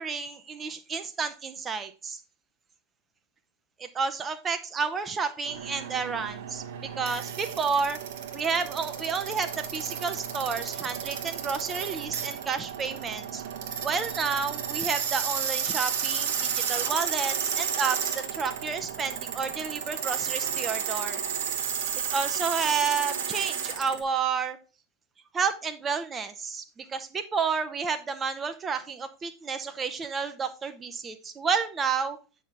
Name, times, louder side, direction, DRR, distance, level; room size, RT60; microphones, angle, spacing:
voice 1, 0.0-2.2 3.8-8.0 8.3-13.4 13.8-21.2 22.1-24.6 25.3-32.2, right 5 dB, 25° right, 8 dB, 0.8 m, -30 dB
sound 1, 5.4-24.0, right 8 dB, 60° right, 1.1 m, -32 dB
8.4 x 5.7 x 3.4 m, 0.32 s
figure-of-eight pair, 80°, 0 cm